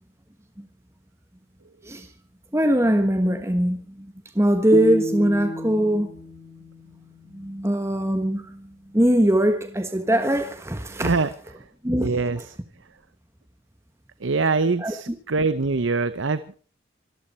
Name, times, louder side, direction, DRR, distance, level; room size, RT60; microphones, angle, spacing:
voice 1, 2.5-4.1 4.3-6.1 7.3-8.7 8.9-11.1 11.8-12.1 14.8-14.9, right 1 dB, 15° right, 1.3 m, -21 dB
sound 1, 4.7-7.9, equal, 20° left, 1.7 m, -31 dB
voice 2, 10.9-11.3 11.6-11.7 12.0-12.6 14.2-16.5, right 4 dB, 85° right, 0.8 m, -24 dB
25.5 x 13.0 x 4.3 m
head